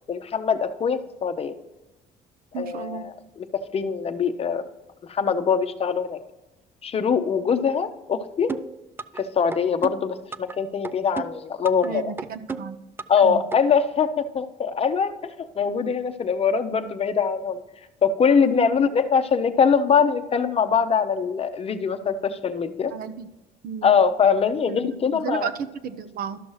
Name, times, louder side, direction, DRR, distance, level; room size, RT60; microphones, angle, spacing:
voice 1, 0.1-1.5 2.5-3.5 3.7-4.6 5.1-6.2 6.8-8.5 9.2-12.1 13.1-17.6 18.0-22.9 23.8-25.5, left 6 dB, 35° left, 9 dB, 0.7 m, -23 dB
voice 2, 2.5-3.1 11.8-12.8 13.2-13.4 18.4-18.8 22.9-23.3 23.6-23.9 24.7-26.4, right 6 dB, 60° right, 10 dB, 0.6 m, -33 dB
sound 1, 8.5-9.2 9.5-10.6 10.8-11.9 12.2-13.2 13.5-13.6, right 4 dB, 15° right, 0.3 m, -33 dB
12.5 x 6.0 x 3.1 m, 1.1 s
cardioid pair, 110°, 17 cm